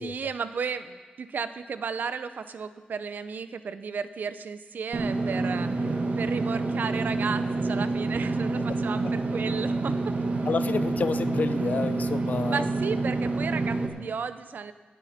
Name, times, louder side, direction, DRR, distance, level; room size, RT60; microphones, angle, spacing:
voice 1, 0.0-10.1 12.5-14.7, right 6 dB, 75° right, 12 dB, 0.6 m, -34 dB
Engine / Mechanisms, 4.9-13.9, right 3 dB, 55° right, 1.3 m, -28 dB
voice 2, 10.5-12.7, left 5 dB, 60° left, 13 dB, 0.5 m, -29 dB
18.5 x 10.0 x 4.3 m, 1.4 s
wide cardioid pair, 110°, 3 cm